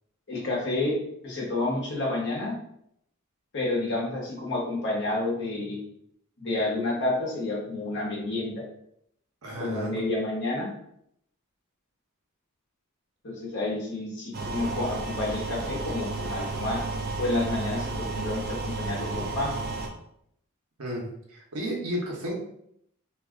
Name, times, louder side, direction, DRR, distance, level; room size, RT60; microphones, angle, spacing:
voice 1, 0.3-0.9 1.2-2.5 3.5-5.8 6.4-8.6 9.6-10.7 13.2-16.8 17.2-19.6, left 2 dB, 55° left, -3 dB, 1.0 m, -29 dB
voice 2, 9.4-9.9 20.8-21.0 21.3-22.4, equal, 75° right, -2 dB, 0.9 m, -32 dB
sound 1, 14.3-19.9, right 3 dB, 45° right, 0.4 m, -32 dB
2.6 x 2.4 x 3.6 m, 0.73 s
head